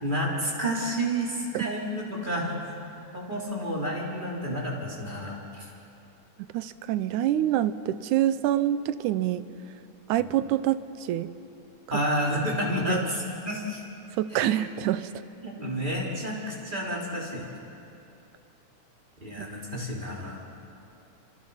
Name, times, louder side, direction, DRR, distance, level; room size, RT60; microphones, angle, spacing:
voice 1, 0.0-2.5 3.1-5.7 10.2-10.3 11.9-13.8 14.3-14.6 15.4-17.5 19.2-20.4, equal, 15° right, -3 dB, 3.6 m, -30 dB
voice 2, 6.5-9.4 10.1-11.3 12.9-13.0 14.2-15.1 19.4-19.5, right 12 dB, 90° right, 14 dB, 2.2 m, -26 dB
30.0 x 26.0 x 5.6 m, 2.8 s
omnidirectional pair, 3.4 m